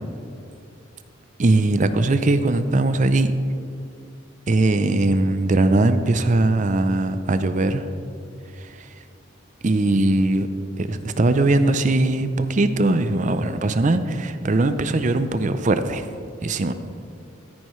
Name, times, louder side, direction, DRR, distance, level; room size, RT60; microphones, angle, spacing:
voice 1, 1.4-3.3 4.5-7.9 9.6-10.5 10.8-16.1 16.4-16.7, right 2 dB, 40° right, 10 dB, 0.5 m, -20 dB
14.0 x 10.0 x 3.2 m, 2.5 s
head